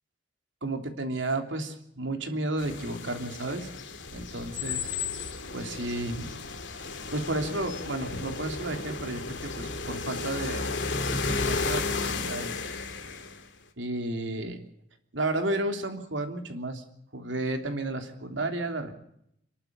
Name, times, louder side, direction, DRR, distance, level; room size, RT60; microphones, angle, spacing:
voice 1, 0.6-3.7 4.1-5.0 5.5-6.4 6.8-10.7 11.1-12.6 13.8-14.6 15.1-16.8 17.1-18.9, right 2 dB, 85° right, 6 dB, 3.1 m, -32 dB
sound 1, 2.6-13.4, left 4 dB, 75° left, 2.2 m, -33 dB
29.0 x 12.0 x 8.7 m, 0.73 s
head